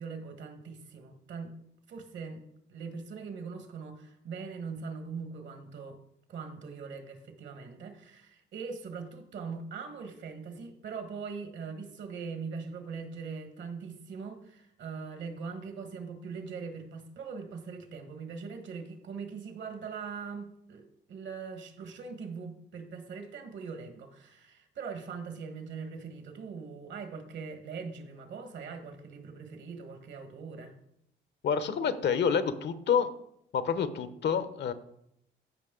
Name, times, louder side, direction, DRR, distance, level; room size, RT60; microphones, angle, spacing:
voice 1, 0.0-1.5 1.9-6.0 6.3-20.8 21.1-30.8, right 5 dB, 65° right, 7 dB, 1.6 m, -41 dB
voice 2, 31.4-33.1 33.5-34.7, left 7 dB, 60° left, 12 dB, 0.8 m, -28 dB
14.5 x 5.3 x 3.8 m, 0.75 s
cardioid pair, 90°, 20 cm